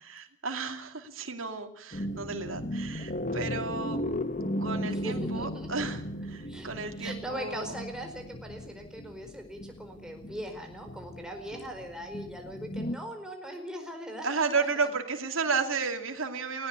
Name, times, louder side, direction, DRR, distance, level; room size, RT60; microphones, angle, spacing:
voice 1, 0.1-4.0 4.6-7.7 14.2-16.7, right 4 dB, 85° right, 5 dB, 2.6 m, -33 dB
sound 1, 1.9-13.0, equal, 40° left, 1.1 m, -36 dB
voice 2, 4.9-5.9 6.5-14.7, equal, 5° right, 3 dB, 4.6 m, -40 dB
19.0 x 18.5 x 8.3 m, 0.67 s
head